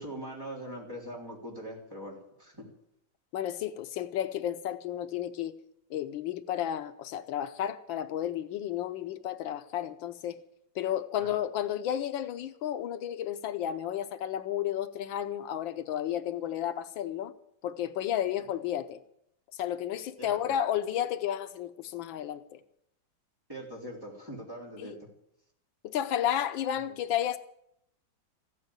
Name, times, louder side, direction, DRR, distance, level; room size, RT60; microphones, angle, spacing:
voice 1, 0.0-2.7 11.2-11.4 20.2-20.6 23.5-24.9 26.7-27.0, right 1 dB, 10° right, 3.7 m, -42 dB
voice 2, 3.3-5.5 5.9-10.4 10.7-17.3 17.6-19.0 19.6-22.6 24.8-24.9 25.8-27.4, left 10 dB, 85° left, 1.5 m, -32 dB
15.0 x 9.4 x 8.8 m
omnidirectional pair, 2.1 m